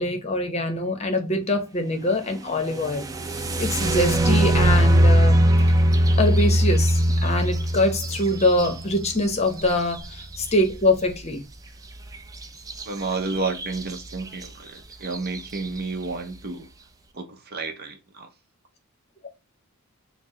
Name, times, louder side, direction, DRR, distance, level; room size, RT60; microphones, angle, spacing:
voice 1, 0.0-3.1 3.6-5.5 6.2-11.4 19.2-19.3, left 1 dB, 30° left, 0.8 m, -24 dB
sound 1, 2.8-10.6 12.7-12.8 13.3-13.8 14.4-14.5 15.0-15.4, right 1 dB, 15° right, 0.3 m, -20 dB
voice 2, 12.8-16.7 17.1-18.3, right 3 dB, 50° right, 0.7 m, -31 dB
4.6 x 2.0 x 3.6 m
head